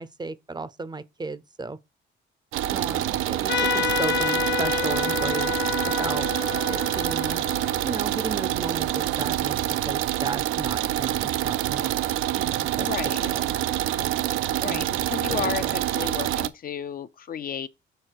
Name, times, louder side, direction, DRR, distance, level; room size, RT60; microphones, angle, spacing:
voice 1, 0.0-1.8 2.7-5.6 6.0-6.3 6.7-7.4 7.8-9.6 9.8-12.9 13.2-13.5 13.9-14.2 14.6-14.8 15.3-15.7, right 3 dB, 20° right, 0.5 m, -35 dB
sound 1, 2.5-16.5, right 13 dB, 85° right, 0.5 m, -26 dB
Trumpet, 3.5-8.6, left 7 dB, 65° left, 0.9 m, -29 dB
voice 2, 12.8-13.3 14.6-17.7, left 8 dB, 50° left, 0.5 m, -33 dB
6.6 x 3.8 x 4.5 m
cardioid pair, 90°, 20 cm